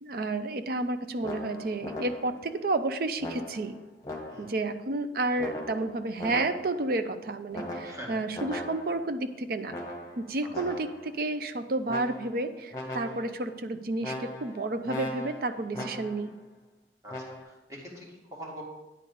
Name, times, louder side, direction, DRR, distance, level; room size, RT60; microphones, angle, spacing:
voice 1, 0.0-3.8 4.4-9.7 10.2-16.3, right 2 dB, 55° right, 9 dB, 0.5 m, -31 dB
sound 1, 1.2-2.5 3.2-4.7 5.4-6.9 7.5-9.1 9.7-11.1 11.9-12.5 12.7-13.4 14.0-16.3 17.1-17.4, left 1 dB, 20° left, 1.4 m, -39 dB
voice 2, 17.0-18.6, equal, 20° right, -4 dB, 2.2 m, -44 dB
9.6 x 4.0 x 6.7 m, 1.1 s
head